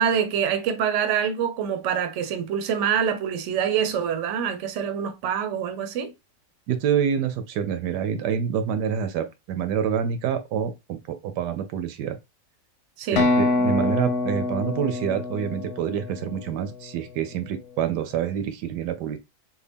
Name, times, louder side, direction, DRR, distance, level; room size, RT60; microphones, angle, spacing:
voice 1, 0.0-6.1 13.0-13.3, right 8 dB, 60° right, 0.8 m, -25 dB
voice 2, 6.7-12.2 13.1-19.2, right 8 dB, 80° right, 1.2 m, -27 dB
sound 1, 13.2-16.9, left 3 dB, 70° left, 1.1 m, -26 dB
3.6 x 2.2 x 3.4 m
omnidirectional pair, 1.8 m